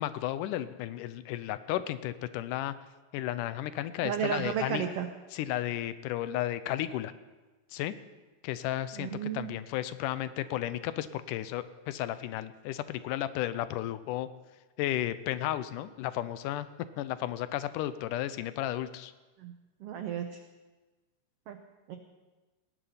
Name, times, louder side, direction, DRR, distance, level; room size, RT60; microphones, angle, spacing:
voice 1, 0.0-2.7 3.1-4.9 5.3-7.1 7.7-7.9 8.4-14.3 14.8-16.7 17.0-19.1, left 13 dB, 85° left, 14 dB, 2.1 m, -33 dB
voice 2, 4.0-5.1 9.0-9.5 19.4-19.5 19.8-20.3 21.5-21.6 21.9-22.0, right 8 dB, 85° right, 6 dB, 1.3 m, -32 dB
18.0 x 10.0 x 5.7 m, 1.2 s
omnidirectional pair, 3.8 m